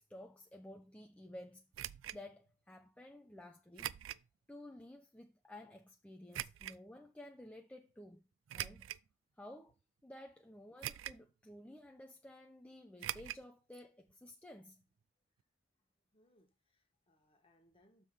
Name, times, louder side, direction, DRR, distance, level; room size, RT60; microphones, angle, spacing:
voice 1, 0.0-1.6 2.1-4.0 4.5-8.2 8.5-8.9 9.4-9.8 10.0-14.8, left 1 dB, 5° left, 0.5 m, -53 dB
sound 1, 1.7-2.2 3.8-4.3 4.8-4.9 6.3-6.8 8.5-9.1 9.7-9.8 10.8-11.3 11.6-11.7 13.0-13.5 13.7-13.8 14.1-14.2, right 12 dB, 75° right, 0.3 m, -42 dB
voice 2, 16.1-18.0, left 1 dB, 30° left, 1.4 m, -71 dB
7.0 x 3.7 x 6.2 m
head